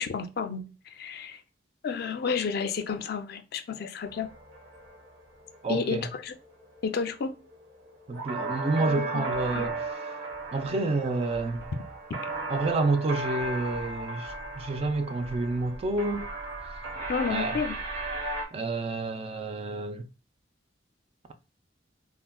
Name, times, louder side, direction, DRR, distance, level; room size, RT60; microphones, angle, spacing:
voice 1, 0.0-1.4 1.8-4.3 5.7-6.3 6.8-7.3 8.9-9.8 17.1-17.8, left 5 dB, 60° left, 0.4 m, -31 dB
sound 1, 4.0-18.5, right 3 dB, 80° right, 1.1 m, -36 dB
voice 2, 5.6-6.0 8.1-9.8 10.5-11.6 12.5-16.3 17.3-17.6 18.5-20.0, right 2 dB, 35° right, 0.3 m, -29 dB
3.5 x 2.1 x 2.2 m
head